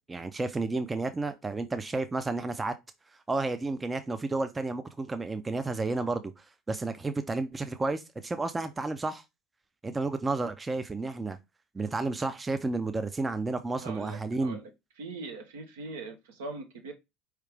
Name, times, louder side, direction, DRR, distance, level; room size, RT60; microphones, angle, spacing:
voice 1, 0.1-2.7 3.3-6.3 6.7-9.2 9.8-11.4 11.7-14.6, right 3 dB, 20° right, 0.5 m, -31 dB
voice 2, 13.8-14.7 15.0-16.9, right 3 dB, 75° right, 1.1 m, -41 dB
4.7 x 3.2 x 3.3 m
figure-of-eight pair, 65°, 0 cm